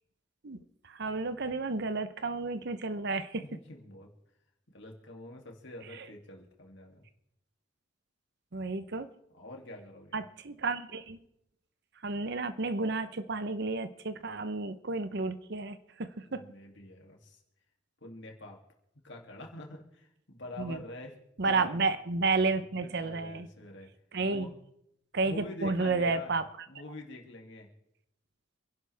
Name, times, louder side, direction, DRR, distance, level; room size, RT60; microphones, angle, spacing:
voice 1, 0.9-3.4 6.0-6.1 8.5-9.1 10.1-11.2 12.0-16.4 20.6-20.8 21.4-23.5 24.1-24.5 25.1-26.4, right 3 dB, 55° right, 12 dB, 0.9 m, -31 dB
voice 2, 3.4-4.1 4.7-7.0 9.3-10.2 16.2-17.4 18.0-18.6 19.0-21.2 21.4-21.8 22.9-23.9 24.3-24.5 25.2-26.4 26.7-27.7, left 1 dB, 65° left, 1 dB, 2.7 m, -46 dB
27.5 x 11.5 x 3.5 m, 0.78 s
head